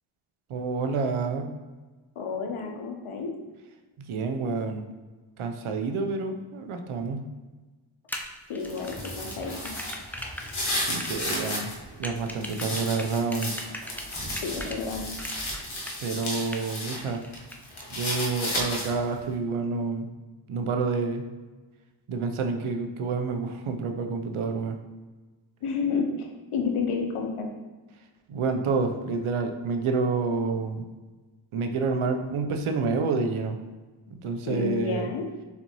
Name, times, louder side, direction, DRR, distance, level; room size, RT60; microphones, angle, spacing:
voice 1, 0.5-1.5 4.1-4.8 5.4-7.2 10.8-11.7 12.0-13.5 16.0-17.2 17.9-20.1 20.5-21.2 22.1-24.8 28.3-30.8 31.5-33.6 34.2-35.1, right 4 dB, 80° right, 5 dB, 0.7 m, -28 dB
voice 2, 2.2-3.3 8.5-9.7 14.3-15.1 25.6-27.5 34.5-35.3, left 5 dB, 90° left, 3 dB, 0.8 m, -30 dB
sound 1, 8.1-14.8 15.2-16.8 17.1-17.8, left 1 dB, 5° left, 0.5 m, -39 dB
sound 2, 8.6-11.7 12.2-17.0 17.3-19.1, left 1 dB, 65° left, 1.5 m, -33 dB
sound 3, 10.4-15.8, right 1 dB, 35° right, 1.2 m, -47 dB
4.3 x 4.0 x 2.9 m, 1.3 s
cardioid pair, 50°, 49 cm